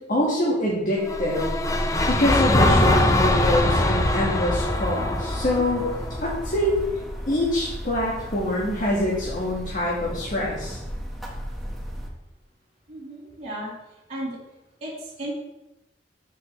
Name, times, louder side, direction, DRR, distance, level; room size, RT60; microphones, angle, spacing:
voice 1, 0.1-1.5 2.1-5.8 6.2-6.8 7.3-10.8, left 1 dB, 50° left, -5 dB, 1.8 m, -25 dB
sound 1, 1.0-7.2, left 1 dB, 20° left, 0.6 m, -22 dB
sound 2, 4.5-12.1, equal, ahead, 1.6 m, -36 dB
voice 2, 12.9-13.7 14.1-14.4 14.8-15.3, right 1 dB, 40° right, -9 dB, 3.6 m, -34 dB
12.5 x 5.8 x 3.3 m, 0.94 s
head